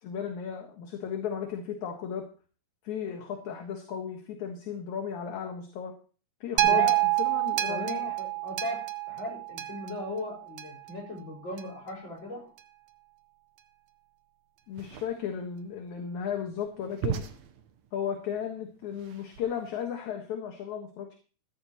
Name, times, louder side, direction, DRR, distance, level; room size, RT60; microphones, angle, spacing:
voice 1, 0.0-2.2 2.8-5.9 6.4-6.9 7.2-8.1 14.7-17.2 17.9-21.1, left 8 dB, 65° left, 3 dB, 2.8 m, -35 dB
voice 2, 6.6-7.0 7.7-12.6, left 2 dB, 35° left, -2 dB, 6.0 m, -38 dB
sound 1, 6.6-10.9 11.6-11.7, right 16 dB, 90° right, 1.3 m, -28 dB
sound 2, 14.7-19.8, right 8 dB, 65° right, 2.1 m, -39 dB
15.0 x 14.0 x 3.0 m, 0.38 s
omnidirectional pair, 3.7 m